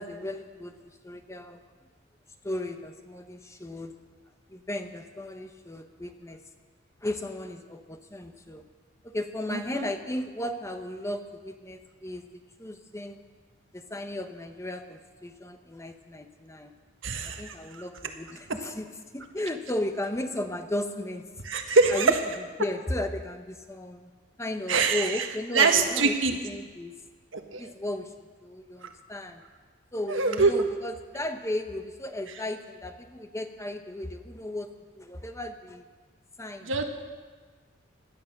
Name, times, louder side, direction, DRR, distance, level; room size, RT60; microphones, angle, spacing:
voice 1, 0.0-1.6 2.4-3.9 4.5-6.4 7.0-8.6 9.0-12.2 12.6-13.2 13.7-16.7 17.2-18.9 19.1-21.3 21.9-22.2 22.6-24.1 24.4-26.1 26.4-27.0 27.6-28.1 28.4-29.4 29.9-34.7 34.9-35.8 36.4-36.7, left 1 dB, 15° left, 7 dB, 0.9 m, -35 dB
voice 2, 9.5-9.9 17.0-17.8 21.4-22.1 24.7-25.2 25.5-26.3 27.3-27.7 30.1-30.5 36.7-36.8, right 4 dB, 80° right, 5 dB, 1.5 m, -24 dB
17.0 x 11.5 x 6.5 m, 1.5 s
head